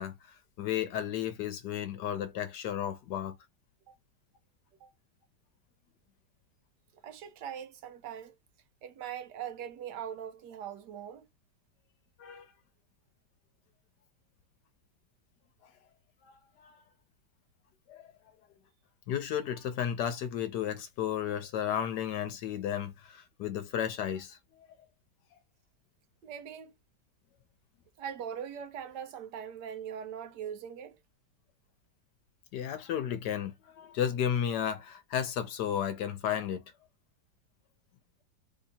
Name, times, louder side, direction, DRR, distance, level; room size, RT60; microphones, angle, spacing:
voice 1, 0.0-3.4 12.2-12.5 16.2-16.3 16.6-16.8 17.9-18.1 19.1-24.4 32.5-36.6, left 9 dB, 70° left, 1.2 m, -33 dB
voice 2, 7.0-8.3 8.8-11.3 26.2-26.7 28.0-31.0, right 8 dB, 75° right, 1.2 m, -41 dB
3.4 x 2.8 x 2.7 m
omnidirectional pair, 1.9 m